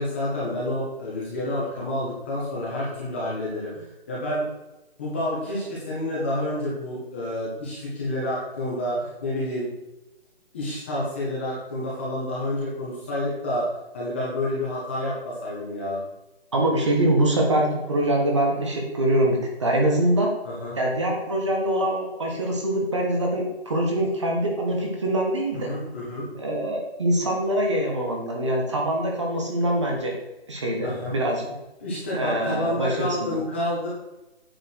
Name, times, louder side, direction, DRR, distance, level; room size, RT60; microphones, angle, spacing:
voice 1, 0.0-4.4 5.0-9.7 10.5-13.7 13.9-16.0 20.4-20.8 25.5-26.3 30.8-31.1 31.8-33.9, left 1 dB, 10° left, -7 dB, 1.4 m, -29 dB
voice 2, 16.5-20.3 20.8-25.7 26.3-30.1 30.5-31.5 32.1-33.4, right 1 dB, 30° right, 0 dB, 1.5 m, -24 dB
9.1 x 7.4 x 4.7 m, 0.99 s
hypercardioid pair, 180°, 32 cm